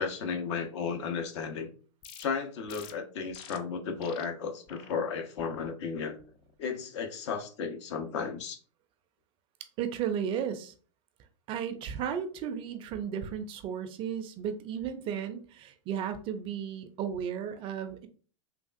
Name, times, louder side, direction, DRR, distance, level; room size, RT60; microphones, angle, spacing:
voice 1, 0.0-1.7 2.2-6.2 6.6-8.6, left 5 dB, 60° left, 4 dB, 0.7 m, -34 dB
sound 1, 2.0-2.2 2.7-2.9 3.3-3.6 4.0-4.2 4.7-4.9 5.4-5.7 6.2-6.5, left 7 dB, 30° left, 0.4 m, -48 dB
voice 2, 9.8-10.7 11.5-18.1, right 8 dB, 30° right, 8 dB, 0.4 m, -34 dB
3.4 x 2.4 x 2.4 m, 0.40 s
hypercardioid pair, 100°, 17 cm